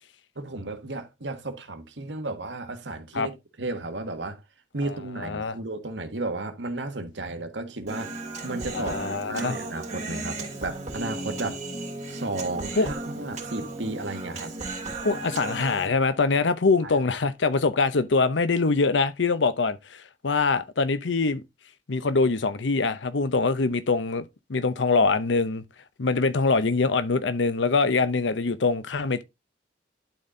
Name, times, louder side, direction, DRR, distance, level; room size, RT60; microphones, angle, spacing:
voice 1, 0.3-4.4 4.7-8.1 8.4-8.9 9.3-11.6 12.1-14.5 16.8-16.9, right 2 dB, 80° right, 1.5 m, -33 dB
voice 2, 4.8-5.6 8.7-9.6 12.8-12.9 15.0-21.4 21.9-24.2 24.5-25.6 26.0-29.2, left 4 dB, 90° left, 0.7 m, -24 dB
Human voice, 7.9-15.9, right 2 dB, 40° right, 3.2 m, -35 dB
11.5 x 4.2 x 3.7 m
head